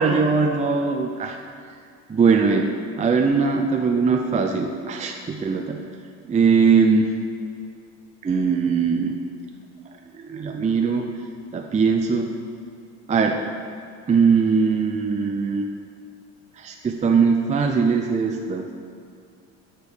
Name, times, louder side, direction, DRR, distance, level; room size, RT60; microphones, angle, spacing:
voice 1, 0.0-1.4 2.1-2.7 3.0-5.8 6.3-7.1 8.2-9.1 10.3-11.0 11.5-12.3 13.1-13.4 14.1-15.6 16.6-18.7, right 5 dB, 20° right, 2 dB, 0.5 m, -20 dB
8.1 x 4.5 x 5.0 m, 2.4 s
supercardioid pair, 75°, 35 cm